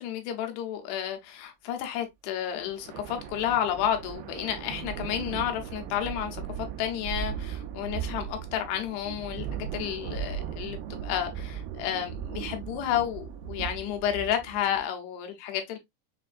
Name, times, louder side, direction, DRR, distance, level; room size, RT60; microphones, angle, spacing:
voice 1, 0.0-9.5 9.7-15.8, left 10 dB, 85° left, 3.0 m, -31 dB
sound 1, 2.6-14.8, right 8 dB, 80° right, 2.5 m, -37 dB
6.6 x 2.5 x 2.3 m
omnidirectional pair, 4.6 m